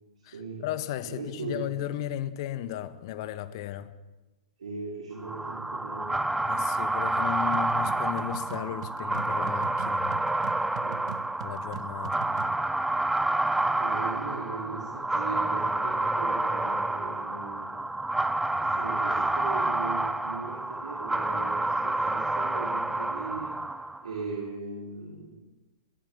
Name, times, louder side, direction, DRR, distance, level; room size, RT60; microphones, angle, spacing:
voice 1, 0.2-3.9 6.5-10.2 11.4-12.3, left 12 dB, 45° left, 13 dB, 1.5 m, -35 dB
voice 2, 1.0-1.6 4.6-6.3 10.8-11.2 13.5-17.7 18.6-23.5 24.0-25.5, right 4 dB, 70° right, 0 dB, 4.5 m, -39 dB
sound 1, 5.2-24.1, right 2 dB, 5° right, 0.7 m, -29 dB
sound 2, 7.5-12.6, right 11 dB, 55° right, 1.0 m, -42 dB
21.5 x 17.5 x 7.4 m, 1.1 s
figure-of-eight pair, 105°, 4 cm